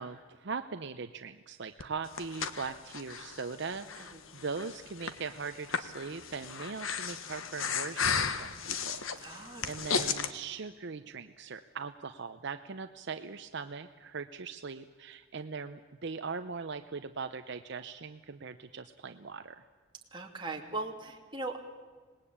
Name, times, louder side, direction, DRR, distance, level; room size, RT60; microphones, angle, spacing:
voice 1, 0.0-19.6, right 5 dB, 60° right, 9 dB, 0.7 m, -40 dB
Breathing, 1.8-10.3, left 6 dB, 80° left, 1.3 m, -35 dB
voice 2, 9.2-9.6 20.1-21.6, right 2 dB, 25° right, 1 dB, 2.7 m, -39 dB
26.0 x 20.0 x 8.7 m, 1.4 s
head